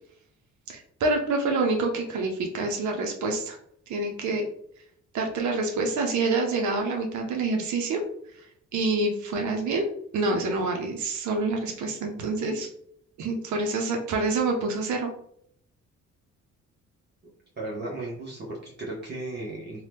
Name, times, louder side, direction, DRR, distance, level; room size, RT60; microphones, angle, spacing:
voice 1, 0.7-3.6 3.9-4.5 5.1-8.0 8.3-8.5 8.7-9.9 10.1-12.7 13.2-15.1, right 3 dB, 75° right, 3 dB, 0.6 m, -27 dB
voice 2, 17.6-19.9, right 2 dB, 35° right, -4 dB, 0.8 m, -35 dB
2.8 x 2.2 x 3.3 m, 0.68 s
cardioid pair, 90°, 30 cm